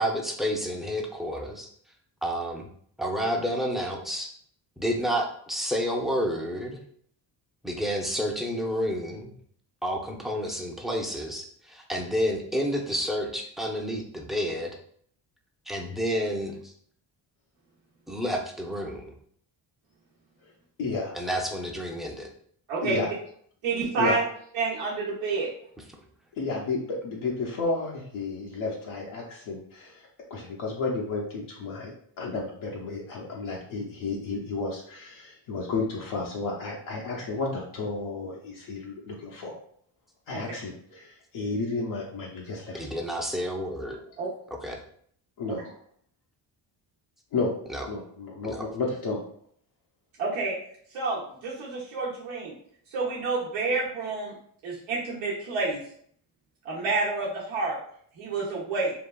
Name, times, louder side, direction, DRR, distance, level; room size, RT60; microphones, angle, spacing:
voice 1, 0.0-1.7 2.2-2.7 3.0-4.3 4.8-6.8 7.6-9.3 9.8-14.8 15.7-16.7 18.1-19.1 21.2-22.3 42.8-44.0 44.6-44.8 47.7-47.8 48.4-48.6, equal, ahead, 1 dB, 0.6 m, -30 dB
voice 2, 20.8-21.1 22.8-23.1 24.0-24.2 26.3-39.5 40.3-42.8 45.4-45.6 47.3-47.5 47.9-49.2, left 3 dB, 80° left, -3 dB, 0.7 m, -32 dB
voice 3, 22.7-23.0 23.6-24.2 24.5-25.5 40.3-40.4 44.2-44.3 50.2-50.6 50.9-52.5 52.9-54.3 54.6-55.8 56.6-57.8 58.2-58.9, right 3 dB, 80° right, -6 dB, 1.0 m, -29 dB
3.7 x 2.4 x 2.3 m, 0.62 s
supercardioid pair, 65°, 47 cm